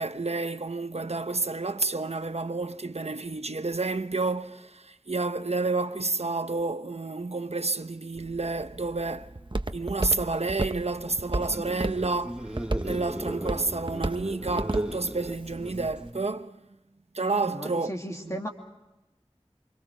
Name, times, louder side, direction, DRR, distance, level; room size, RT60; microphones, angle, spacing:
voice 1, 0.0-9.3 9.7-16.6 17.1-17.9 18.2-18.4, right 3 dB, 80° right, 1.0 m, -30 dB
Walk footsteps, 8.2-16.1, right 2 dB, 50° right, 1.0 m, -35 dB
sound 1, 11.2-16.3, equal, 10° right, 1.7 m, -37 dB
voice 2, 17.4-18.5, equal, 30° left, 2.6 m, -35 dB
28.5 x 25.5 x 5.1 m
wide cardioid pair, 40°, 11 cm